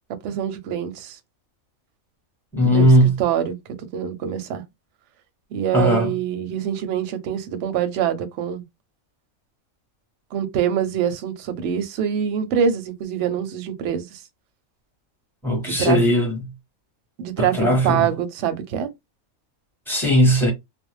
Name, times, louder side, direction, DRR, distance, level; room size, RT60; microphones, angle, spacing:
voice 1, 0.2-1.2 2.6-2.9 3.2-4.6 5.5-8.6 10.3-14.2 15.6-16.0 17.2-18.9, right 8 dB, 65° right, 0.8 m, -25 dB
voice 2, 2.5-3.2 5.7-6.1 15.4-16.4 17.4-18.1 19.9-20.5, equal, ahead, 0.8 m, -18 dB
2.4 x 2.1 x 3.1 m
omnidirectional pair, 1.5 m